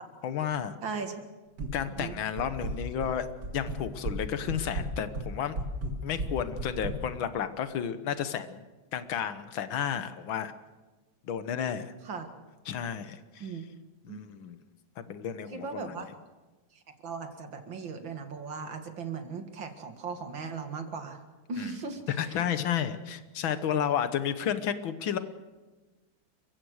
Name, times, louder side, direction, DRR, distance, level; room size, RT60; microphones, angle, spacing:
voice 1, 0.2-0.8 1.7-3.3 3.5-5.6 6.0-8.6 8.9-10.5 11.3-11.9 12.7-13.5 14.0-14.6 15.1-16.1 21.6-21.8 22.1-25.2, left 8 dB, 90° left, 11 dB, 1.9 m, -32 dB
voice 2, 0.8-1.1 2.0-2.1 12.1-12.3 13.4-13.6 14.1-14.2 15.5-16.1 17.0-21.2 21.5-22.0, right 5 dB, 75° right, 6 dB, 2.7 m, -37 dB
sound 1, 1.6-2.1 2.4-3.1 3.4-4.2 4.5-7.0, right 2 dB, 60° right, 2.8 m, -34 dB
29.5 x 15.5 x 6.5 m, 1.2 s
omnidirectional pair, 2.1 m